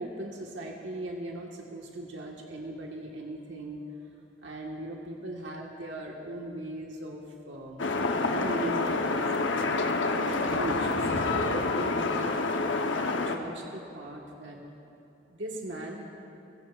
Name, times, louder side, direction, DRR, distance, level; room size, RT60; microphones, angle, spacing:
voice 1, 0.0-3.8 4.4-7.9 8.2-9.2 10.1-14.6 15.3-16.0, right 1 dB, 75° right, -1 dB, 1.5 m, -38 dB
sound 1, 7.8-13.4, left 3 dB, 80° left, 0.9 m, -28 dB
28.5 x 16.5 x 2.4 m, 2.9 s
head